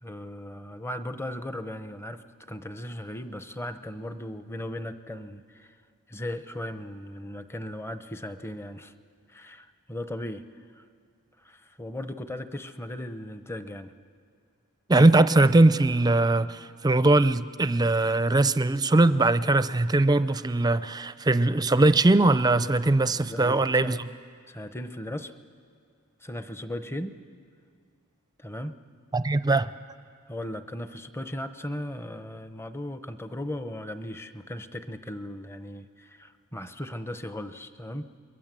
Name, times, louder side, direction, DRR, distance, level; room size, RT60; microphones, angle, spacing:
voice 1, 0.0-5.8 6.1-8.9 9.3-10.5 10.7-10.8 11.4-13.9 23.3-24.1 24.5-25.3 26.2-27.2 28.4-28.8 30.3-38.1, left 1 dB, 10° left, 10 dB, 0.8 m, -37 dB
voice 2, 14.9-24.0 29.1-29.7, right 2 dB, 20° right, 13 dB, 0.6 m, -21 dB
28.5 x 22.5 x 7.6 m, 2.2 s
head